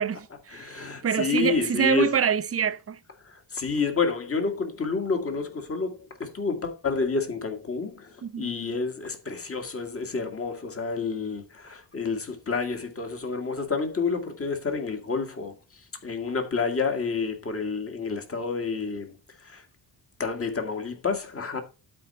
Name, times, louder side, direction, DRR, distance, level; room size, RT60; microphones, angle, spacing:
voice 1, 0.0-3.0 8.2-8.5, right 8 dB, 30° right, 0.5 m, -26 dB
voice 2, 0.5-2.1 3.2-19.7 20.2-21.6, left 4 dB, 30° left, 1.9 m, -29 dB
12.0 x 4.5 x 4.2 m
cardioid pair, 110°, 47 cm